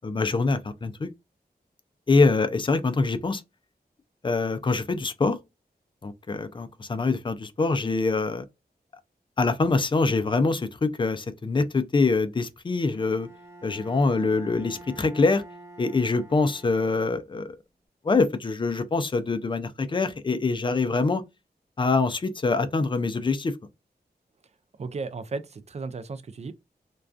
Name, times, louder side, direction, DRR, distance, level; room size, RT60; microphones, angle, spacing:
voice 1, 0.0-1.1 2.1-3.4 4.2-5.4 6.0-8.4 9.4-13.3 13.6-15.4 15.8-17.5 18.0-21.2 21.8-23.5, left 3 dB, 30° left, 0.4 m, -24 dB
Bowed string instrument, 12.9-17.5, right 2 dB, 20° right, 0.9 m, -47 dB
voice 2, 24.8-26.5, right 4 dB, 40° right, 0.4 m, -35 dB
2.3 x 2.2 x 2.4 m
wide cardioid pair, 75°, 17 cm